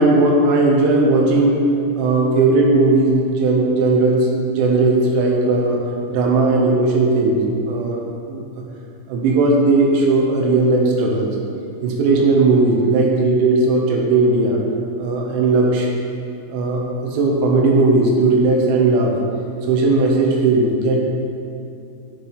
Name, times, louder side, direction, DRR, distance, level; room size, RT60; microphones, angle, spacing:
voice 1, 0.0-1.6 2.0-5.8 6.1-7.4 7.7-8.0 8.3-8.4 9.1-11.3 11.8-14.6 15.0-15.9 16.5-19.1 19.7-21.0, right 3 dB, 80° right, -1 dB, 3.4 m, -17 dB
9.6 x 4.7 x 4.7 m, 2.7 s
omnidirectional pair, 5.5 m